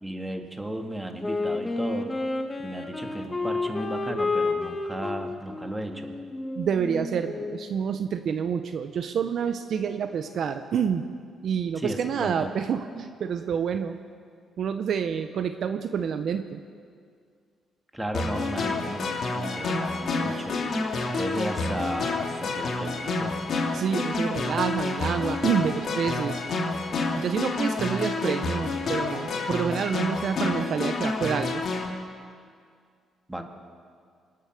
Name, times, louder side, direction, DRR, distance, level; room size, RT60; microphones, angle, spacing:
voice 1, 0.0-2.1 2.6-6.2 11.8-12.5 17.9-23.4 33.3-33.5, right 1 dB, 10° right, 4 dB, 1.8 m, -35 dB
Wind instrument woodwind instrument, 1.2-7.8, left 3 dB, 20° left, 1.5 m, -31 dB
voice 2, 6.6-11.0 11.4-14.0 14.6-16.6 23.7-26.4 27.2-31.6, right 7 dB, 65° right, 9 dB, 0.7 m, -28 dB
sound 1, 18.1-31.9, left 3 dB, 55° left, 2.3 m, -29 dB
25.0 x 8.4 x 6.6 m, 2.2 s
cardioid pair, 90°, 0 cm